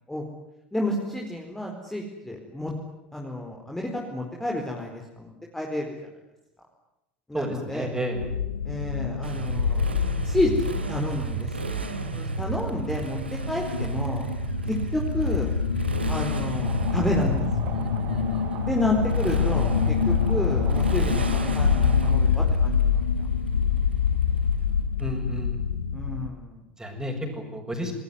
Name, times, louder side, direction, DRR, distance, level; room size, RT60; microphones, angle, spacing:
voice 1, 0.7-2.7 3.1-6.0 7.3-7.9 8.6-10.0 10.2-11.8 12.1-13.2 13.5-14.2 14.7-15.5 16.1-17.5 18.7-23.0 25.9-26.6, left 1 dB, 5° left, 0 dB, 4.5 m, -30 dB
voice 2, 7.3-8.2 25.0-25.6 26.8-27.9, equal, 10° right, 4 dB, 7.4 m, -31 dB
sound 1, 8.1-26.3, left 7 dB, 80° left, 1.2 m, -26 dB
Motorcycle, 9.2-25.0, right 4 dB, 85° right, 2.8 m, -33 dB
sound 2, 16.6-22.1, right 7 dB, 50° right, 3.9 m, -36 dB
29.0 x 20.0 x 9.8 m, 0.93 s
figure-of-eight pair, 75°, 6 cm